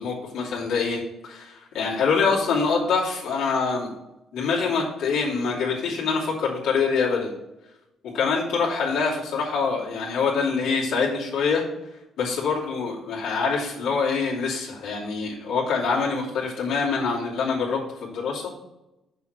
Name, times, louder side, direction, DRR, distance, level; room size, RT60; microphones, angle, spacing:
voice 1, 0.0-3.9 4.3-7.3 8.1-11.6 12.2-18.5, left 5 dB, 85° left, -5 dB, 2.8 m, -25 dB
6.8 x 6.3 x 4.6 m, 0.93 s
cardioid pair, 120°, 0 cm